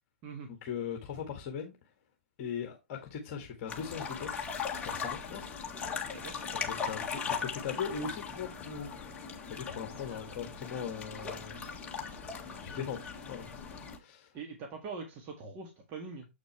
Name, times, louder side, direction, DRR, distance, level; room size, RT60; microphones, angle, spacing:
voice 1, 0.6-1.8 2.4-4.5 4.8-5.5 6.6-11.8 12.6-13.5 14.0-14.3, left 7 dB, 35° left, 1.8 m, -40 dB
sound 1, 3.7-14.0, left 6 dB, 15° left, 1.8 m, -39 dB
voice 2, 6.1-6.4 14.3-16.3, right 4 dB, 30° right, 1.8 m, -43 dB
7.8 x 6.5 x 3.3 m
hypercardioid pair, 130°, 7 cm